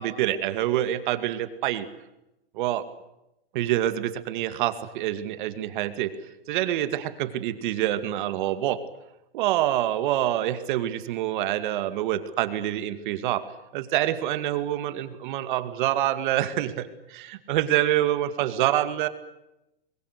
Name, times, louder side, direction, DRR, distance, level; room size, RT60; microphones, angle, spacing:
voice 1, 0.0-1.9 2.5-2.8 3.5-6.1 6.5-8.8 9.3-13.4 13.7-19.1, right 13 dB, 50° right, 11 dB, 2.4 m, -26 dB
26.5 x 22.0 x 8.3 m, 0.91 s
hypercardioid pair, 140°, 31 cm